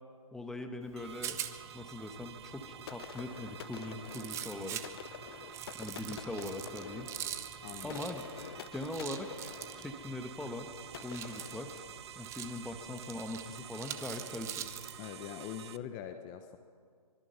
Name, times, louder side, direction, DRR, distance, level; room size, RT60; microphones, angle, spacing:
voice 1, 0.3-1.4 1.7-4.8 5.7-7.1 7.8-8.3 8.7-9.5 9.8-10.7 11.0-11.8 12.1-14.7, left 1 dB, 5° left, 6 dB, 1.2 m, -41 dB
Rattle, 0.8-15.0, right 10 dB, 15° right, 0.9 m, -45 dB
sound 1, 1.0-15.8, right 10 dB, 45° right, 0.7 m, -50 dB
sound 2, 2.9-12.5, left 10 dB, 40° left, 0.6 m, -49 dB
voice 2, 7.6-8.1 15.0-16.6, left 10 dB, 25° left, 8 dB, 1.0 m, -44 dB
24.5 x 23.5 x 5.7 m, 2.1 s
figure-of-eight pair, 140°, 19 cm